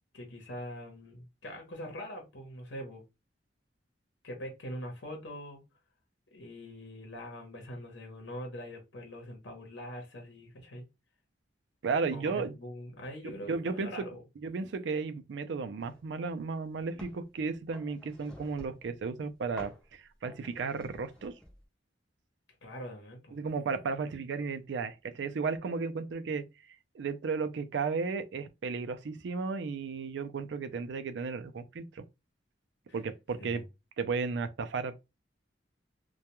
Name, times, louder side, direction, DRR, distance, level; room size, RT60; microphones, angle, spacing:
voice 1, 0.1-3.0 4.2-5.6 6.3-10.8 12.1-14.2 22.6-23.4 32.9-33.0 33.4-33.6, equal, 75° left, 0.8 m, -43 dB
voice 2, 11.8-12.5 13.2-14.1 14.4-21.3 23.3-26.4 26.7-32.0 32.9-33.6 34.0-35.0, right 4 dB, 70° right, 0.4 m, -34 dB
sound 1, 15.8-16.0 16.5-17.2 17.7-18.9 19.6-19.9 20.3-21.6, left 1 dB, 5° left, 0.7 m, -51 dB
2.2 x 2.2 x 2.9 m
head